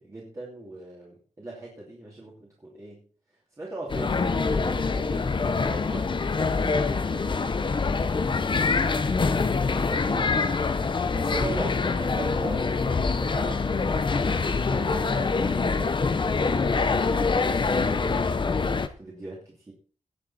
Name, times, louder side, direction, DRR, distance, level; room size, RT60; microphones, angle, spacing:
voice 1, 0.0-3.0 3.6-7.7 8.7-10.7 11.1-16.1 16.5-19.7, right 2 dB, 25° right, -4 dB, 2.8 m, -40 dB
sound 1, 3.9-18.9, left 4 dB, 40° left, 0.9 m, -25 dB
18.5 x 6.8 x 4.2 m, 0.42 s
wide cardioid pair, 170°, 13 cm